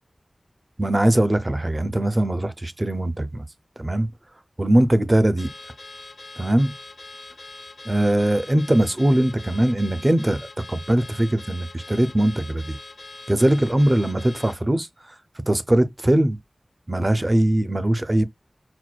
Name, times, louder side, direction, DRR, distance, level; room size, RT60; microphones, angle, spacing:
voice 1, 0.8-3.5 3.8-4.1 4.6-5.5 6.4-6.7 7.8-12.8 13.3-14.9 15.5-16.4 16.9-18.2, right 1 dB, 30° right, 0.5 m, -21 dB
Car / Alarm, 5.4-14.6, left 3 dB, 80° left, 0.8 m, -42 dB
5.9 x 2.2 x 2.3 m
wide cardioid pair, 70°, 0 cm